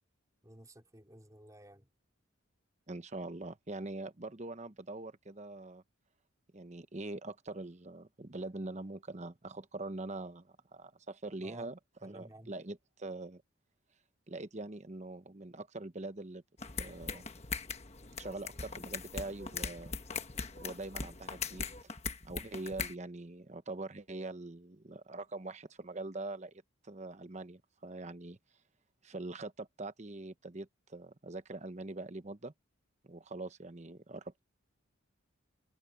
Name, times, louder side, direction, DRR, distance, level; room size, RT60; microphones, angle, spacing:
voice 1, 0.4-1.9 11.4-11.7 12.0-12.5, right 1 dB, 15° right, 3.9 m, -54 dB
voice 2, 2.9-5.8 6.5-13.4 14.3-16.4 16.8-17.2 18.2-19.9 20.6-21.9 22.2-26.5 26.8-28.4 29.0-32.5 33.0-34.4, right 2 dB, 35° right, 0.9 m, -43 dB
sound 1, 16.6-22.9, left 5 dB, 30° left, 1.3 m, -40 dB
head